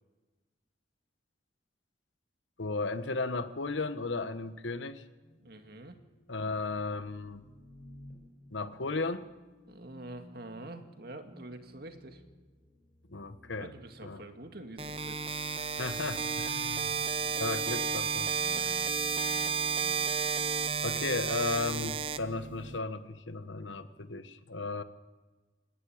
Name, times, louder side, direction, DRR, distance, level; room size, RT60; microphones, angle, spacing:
voice 1, 2.6-5.0 6.3-7.5 8.5-9.3 13.1-13.7 14.0-14.2 15.8-16.9 17.4-18.3 20.8-24.8, left 3 dB, 90° left, 12 dB, 1.3 m, -35 dB
sound 1, 4.3-21.9, left 1 dB, 40° left, 4.8 m, -56 dB
voice 2, 5.4-6.0 9.7-12.2 13.6-15.3 18.5-18.9, right 2 dB, 55° right, 6 dB, 2.0 m, -46 dB
sound 2, 14.8-22.8, right 6 dB, 30° right, 0.7 m, -32 dB
28.0 x 11.0 x 8.7 m, 1.3 s
head